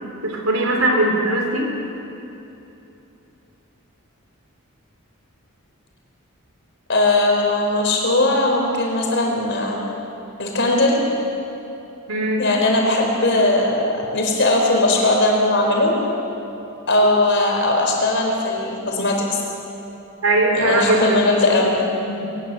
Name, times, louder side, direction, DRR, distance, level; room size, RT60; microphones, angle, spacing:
voice 1, 0.2-1.7 12.1-12.4 20.2-21.2 22.0-22.4, right 1 dB, 75° right, 1 dB, 3.5 m, -20 dB
voice 2, 6.9-9.8 10.4-11.0 12.4-15.9 16.9-19.4 20.5-21.8, left 2 dB, 55° left, 0 dB, 4.7 m, -19 dB
21.0 x 20.0 x 8.0 m, 2.9 s
head